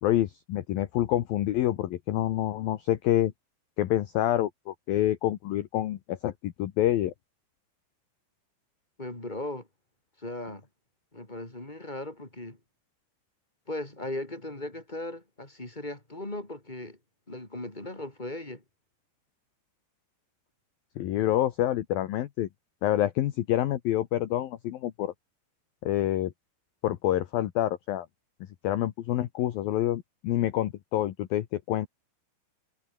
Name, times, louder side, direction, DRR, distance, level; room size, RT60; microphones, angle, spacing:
voice 1, 0.0-3.3 3.8-7.1 21.0-22.5 22.8-25.1 25.8-26.3 26.8-28.1 28.6-31.9, left 13 dB, 65° left, 2.5 m, -27 dB
voice 2, 9.0-9.7 10.2-10.7 11.1-12.6 13.7-17.0 17.3-18.6, left 1 dB, 10° left, 3.6 m, -37 dB
omnidirectional pair, 5.3 m